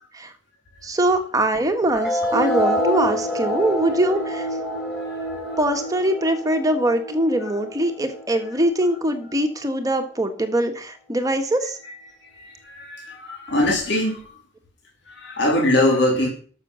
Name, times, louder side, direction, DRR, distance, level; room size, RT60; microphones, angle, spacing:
voice 1, 0.8-4.5 5.6-11.8, right 1 dB, 20° right, 1.5 m, -22 dB
sound 1, 1.9-8.9, equal, ahead, 4.4 m, -27 dB
voice 2, 12.4-14.2 15.1-16.3, left 1 dB, 60° left, 3.2 m, -22 dB
12.5 x 6.8 x 6.2 m
head